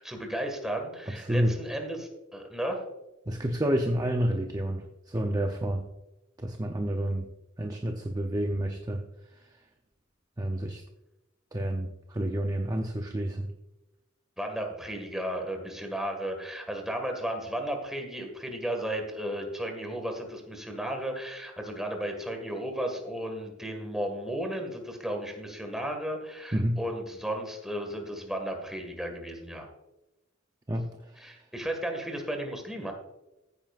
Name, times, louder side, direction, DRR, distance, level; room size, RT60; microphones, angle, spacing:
voice 1, 0.0-2.8 14.4-29.7 31.2-32.9, right 1 dB, ahead, 3 dB, 1.8 m, -34 dB
voice 2, 1.1-1.5 3.3-5.8 6.4-7.3 7.6-9.0 10.4-10.8 11.5-13.5 26.5-26.8 30.7-31.3, right 1 dB, 20° right, 3 dB, 0.6 m, -29 dB
15.0 x 9.2 x 2.5 m, 0.97 s
head